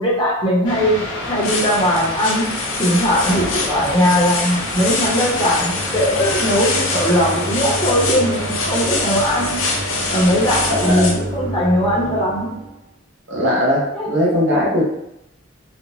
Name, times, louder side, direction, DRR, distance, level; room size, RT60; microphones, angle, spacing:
voice 1, 0.0-2.5 2.8-9.6 10.1-12.5 13.9-14.1, equal, 25° left, -6 dB, 0.8 m, -19 dB
sound 1, 0.6-10.9, left 1 dB, 70° left, 0.9 m, -28 dB
sound 2, 1.2-11.1, left 4 dB, 90° left, 0.5 m, -25 dB
sound 3, 2.5-12.8, right 1 dB, 50° right, 0.7 m, -31 dB
voice 2, 10.7-11.0 13.3-14.8, left 1 dB, 85° right, -5 dB, 0.9 m, -19 dB
2.5 x 2.1 x 2.9 m, 0.84 s
head